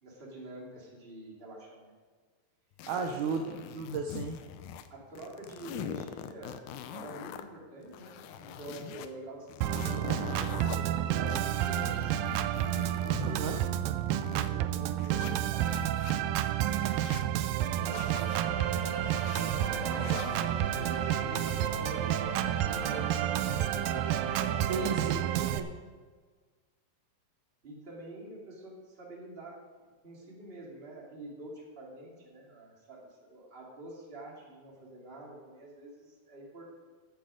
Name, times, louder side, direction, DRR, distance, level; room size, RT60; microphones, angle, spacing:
voice 1, 0.0-1.9 2.9-3.4 4.9-6.6 6.9-13.6 14.2-16.1 17.3-18.1 18.4-22.1 22.6-24.1 24.7-25.6 27.6-29.6 30.0-36.7, right 1 dB, 20° right, -3 dB, 2.3 m, -47 dB
sound 1, 2.8-4.9 5.2-7.4 7.9-9.1 9.5-10.8 11.3-14.5 15.0-16.1 16.6-17.3 17.8-18.4 19.0-19.4 19.9-20.5, left 8 dB, 75° left, 2.0 m, -43 dB
voice 2, 2.9-4.4 13.2-13.6 24.7-25.2 25.5-25.7, right 4 dB, 75° right, 3 dB, 2.0 m, -34 dB
Organ, 9.6-25.6, right 12 dB, 90° right, 2.3 m, -30 dB
sound 2, 18.2-25.0, equal, 55° left, 2.8 m, -42 dB
13.5 x 8.4 x 5.0 m, 1.5 s
omnidirectional pair, 4.0 m